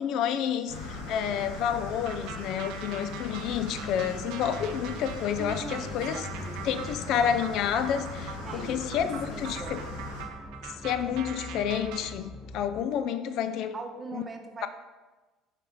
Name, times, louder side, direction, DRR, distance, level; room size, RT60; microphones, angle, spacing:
voice 1, 0.0-6.3 6.6-9.8 10.6-13.7 14.1-14.2, left 8 dB, 60° left, 11 dB, 0.4 m, -30 dB
sound 1, 0.7-10.2, left 3 dB, 80° left, 1.1 m, -40 dB
sound 2, 2.0-12.1, right 7 dB, 65° right, 0.5 m, -43 dB
sound 3, 3.7-12.8, left 1 dB, ahead, 0.6 m, -44 dB
voice 2, 5.4-6.8 8.4-9.9 13.7-14.7, right 3 dB, 30° right, 5 dB, 0.9 m, -41 dB
6.8 x 3.4 x 5.0 m, 1.2 s
hypercardioid pair, 60°, 0 cm